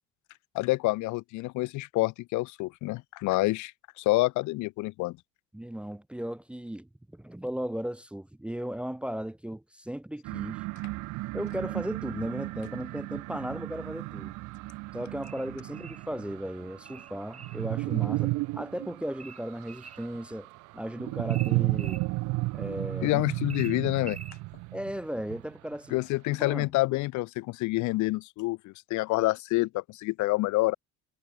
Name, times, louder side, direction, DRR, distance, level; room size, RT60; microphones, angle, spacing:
voice 1, 0.5-3.7 4.0-5.2 23.0-24.2 25.9-30.7, left 20 dB, 80° left, 1.6 m, -27 dB
voice 2, 5.5-10.6 11.3-14.3 14.9-20.5 20.7-22.0 22.5-23.3 24.7-26.0 26.4-26.7, equal, 5° right, 0.7 m, -36 dB
sound 1, 10.2-25.7, right 23 dB, 90° right, 1.1 m, -34 dB
sound 2, 15.2-16.1 16.9-17.6 19.2-20.1 21.3-22.1 23.5-24.4, right 5 dB, 25° right, 7.1 m, -46 dB
cardioid pair, 160°, 29 cm